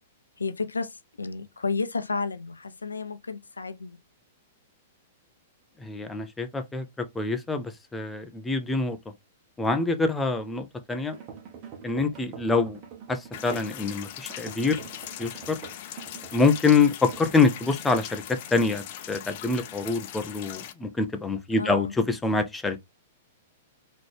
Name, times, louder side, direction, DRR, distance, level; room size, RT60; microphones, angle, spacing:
voice 1, 0.4-4.0 21.5-21.9, left 4 dB, 90° left, 0.5 m, -32 dB
voice 2, 5.8-6.9 7.1-9.0 9.6-11.1 11.8-12.8 13.1-14.8 15.2-15.6 16.3-18.2 18.5-22.8, left 4 dB, 10° left, 0.7 m, -25 dB
sound 1, 11.0-13.8 14.3-17.4, right 6 dB, 40° right, 1.4 m, -44 dB
sound 2, 13.3-20.7, left 11 dB, 50° left, 0.7 m, -40 dB
4.0 x 3.2 x 3.3 m
hypercardioid pair, 110°, 0 cm